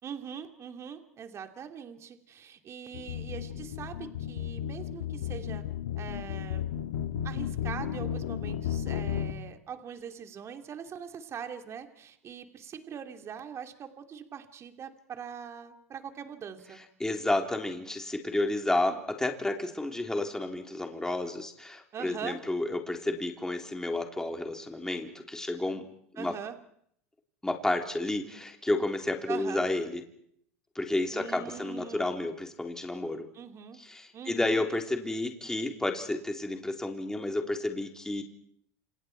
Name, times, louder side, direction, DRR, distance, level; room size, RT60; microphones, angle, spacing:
voice 1, 0.0-5.6 5.9-6.6 7.2-16.8 21.9-22.4 26.2-26.6 29.3-29.6 31.1-32.1 33.3-33.8 34.1-34.6, right 7 dB, 35° right, 5 dB, 2.7 m, -42 dB
sound 1, 2.9-9.3, left 10 dB, 80° left, 2.0 m, -34 dB
voice 2, 17.0-25.9 26.2-26.3 27.4-30.0 30.8-33.3 33.8-38.2, left 2 dB, 5° left, 3 dB, 3.7 m, -31 dB
29.5 x 28.5 x 4.6 m, 0.68 s
hypercardioid pair, 90°, 8 cm